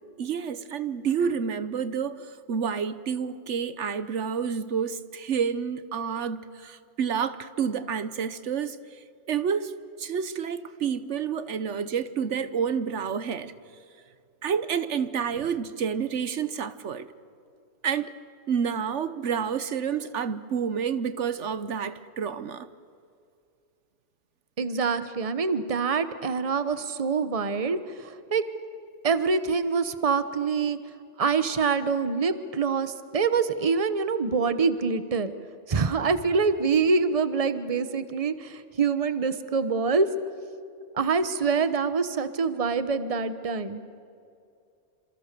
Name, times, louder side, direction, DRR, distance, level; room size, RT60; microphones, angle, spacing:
voice 1, 0.2-9.0 9.3-9.7 10.0-13.5 14.4-17.1 17.8-18.1 18.5-22.7, right 7 dB, 75° right, 13 dB, 1.2 m, -29 dB
voice 2, 24.6-27.8 28.3-28.4 29.0-30.8 31.2-35.3 35.7-40.1 41.0-43.8, right 5 dB, 30° right, 11 dB, 1.1 m, -25 dB
28.0 x 27.0 x 6.8 m, 2.5 s
omnidirectional pair, 1.2 m